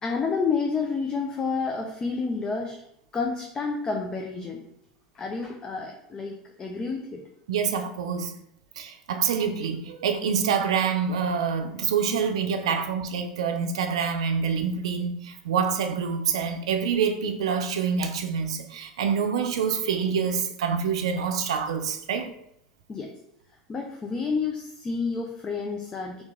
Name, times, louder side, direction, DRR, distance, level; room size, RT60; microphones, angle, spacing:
voice 1, 0.0-2.8 3.1-4.6 5.1-7.2 12.7-12.8 22.9-23.1 23.7-26.2, left 4 dB, 25° left, 1 dB, 0.4 m, -29 dB
voice 2, 7.5-8.3 8.8-22.3, right 6 dB, 85° right, 6 dB, 0.4 m, -26 dB
3.0 x 2.5 x 3.5 m, 0.75 s
hypercardioid pair, 100°, 3 cm